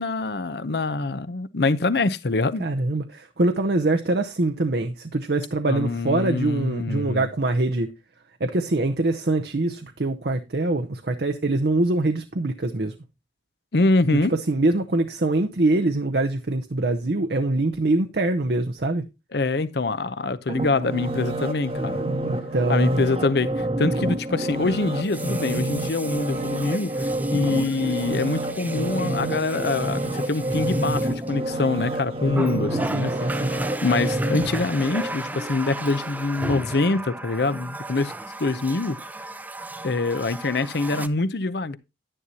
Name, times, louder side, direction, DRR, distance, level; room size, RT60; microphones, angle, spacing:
voice 1, 0.0-2.7 5.7-7.2 13.7-14.3 19.3-22.0 22.7-33.1 33.5-38.1 38.4-39.0 39.8-41.8, left 3 dB, 60° left, 0.7 m, -25 dB
voice 2, 2.6-7.9 8.4-12.9 14.1-19.1 22.3-23.0 32.9-33.5, right 2 dB, 60° right, 0.7 m, -24 dB
sound 1, 20.5-35.5 36.0-36.1, right 1 dB, 30° right, 1.0 m, -28 dB
Water tap faucet, 21.4-21.5 24.9-31.8 32.3-41.1, right 1 dB, 10° right, 0.4 m, -35 dB
11.0 x 9.9 x 2.8 m
head